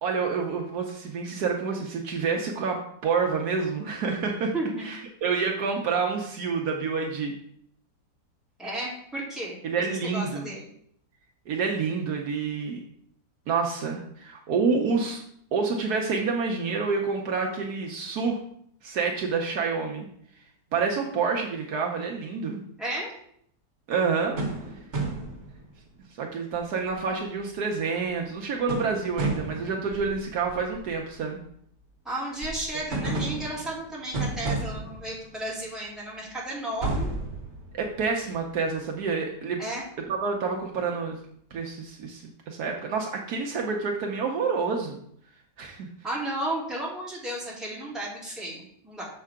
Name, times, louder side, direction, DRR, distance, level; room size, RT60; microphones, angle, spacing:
voice 1, 0.0-4.5 4.8-7.3 9.6-10.6 11.5-12.8 13.5-15.2 15.5-18.4 18.8-20.1 20.7-22.6 23.9-24.4 26.2-31.4 37.7-39.6 40.1-41.2 41.5-45.0 45.6-45.9, right 5 dB, 70° right, 1 dB, 1.2 m, -28 dB
voice 2, 4.5-4.9 8.6-10.7 22.8-23.1 32.0-37.1 39.6-39.8 46.0-49.0, right 1 dB, ahead, -7 dB, 2.2 m, -33 dB
sound 1, 24.4-25.9 26.5-26.6 26.9-27.2 28.3-28.4 28.7-31.1 32.4-35.5 36.2-36.3 36.8-38.4, right 2 dB, 45° right, 1.6 m, -32 dB
6.6 x 5.5 x 3.6 m, 0.67 s
omnidirectional pair, 1.8 m